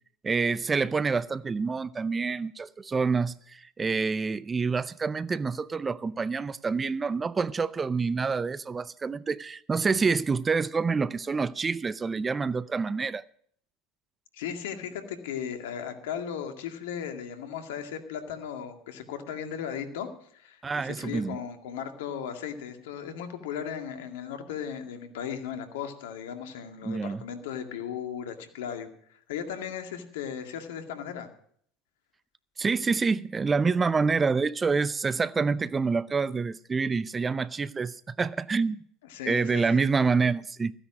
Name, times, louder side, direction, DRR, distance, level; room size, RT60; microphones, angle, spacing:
voice 1, 0.2-13.2 20.6-21.4 26.8-27.2 32.6-38.8 39.3-40.7, right 4 dB, 25° right, 0.6 m, -27 dB
voice 2, 14.3-31.3 39.0-39.9, left 8 dB, 75° left, 2.1 m, -36 dB
15.0 x 10.0 x 6.2 m
hypercardioid pair, 80°, 0 cm